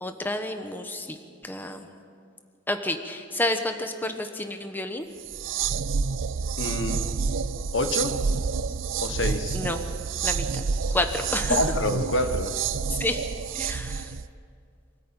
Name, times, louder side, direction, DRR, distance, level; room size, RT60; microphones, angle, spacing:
voice 1, 0.0-1.2 1.4-1.9 2.7-5.1 9.5-9.8 10.2-10.6 10.9-11.6 12.9-13.2 13.5-14.1, left 1 dB, 10° left, 6 dB, 1.1 m, -30 dB
sound 1, 5.2-14.3, right 5 dB, 85° right, 0.6 m, -28 dB
voice 2, 6.6-7.1 7.7-8.1 9.0-9.6 11.5-12.6, left 1 dB, 70° left, 8 dB, 1.4 m, -27 dB
25.0 x 13.5 x 9.0 m, 2.2 s
head